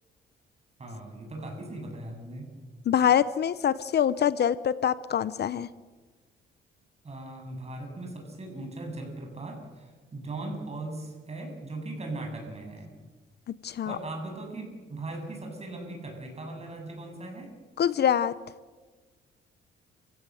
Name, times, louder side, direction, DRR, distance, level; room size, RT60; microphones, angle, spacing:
voice 1, 0.8-2.5 7.0-12.9 13.8-17.5, right 2 dB, 30° right, 3 dB, 7.9 m, -39 dB
voice 2, 2.9-5.7 13.6-14.0 17.8-18.4, left 9 dB, 55° left, 16 dB, 0.8 m, -24 dB
29.0 x 16.5 x 7.9 m, 1.4 s
cardioid pair, 90°, 20 cm